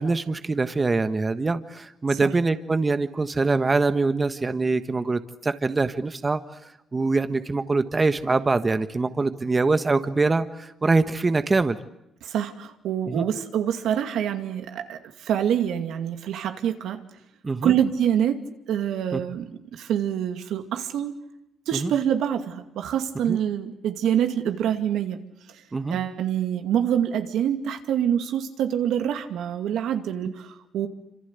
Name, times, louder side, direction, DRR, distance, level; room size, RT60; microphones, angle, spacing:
voice 1, 0.0-11.8 13.1-13.2 17.4-17.7 19.1-19.2 21.7-21.9 23.3-23.4 25.7-26.0 30.2-30.3, right 3 dB, 25° right, 10 dB, 1.3 m, -24 dB
voice 2, 12.2-17.0 17.6-18.4 18.7-19.5 19.7-21.2 21.7-25.2 25.9-30.9, right 9 dB, 80° right, 7 dB, 2.4 m, -26 dB
27.0 x 26.5 x 8.2 m, 0.83 s
cardioid pair, 90°, 0 cm